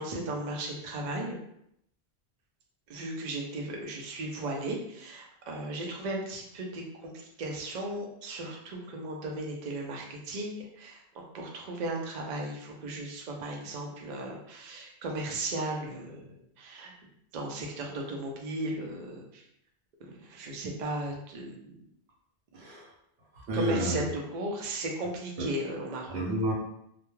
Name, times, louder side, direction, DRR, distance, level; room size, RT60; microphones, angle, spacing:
voice 1, 0.0-1.4 2.9-16.9 17.3-19.4 20.2-21.8 22.5-22.6 23.5-26.2, right 2 dB, 55° right, 0 dB, 0.5 m, -36 dB
voice 2, 22.5-22.9 23.3-24.0 25.4-25.5 26.1-26.5, equal, 90° right, -2 dB, 1.0 m, -30 dB
2.2 x 2.1 x 3.0 m, 0.75 s
omnidirectional pair, 1.1 m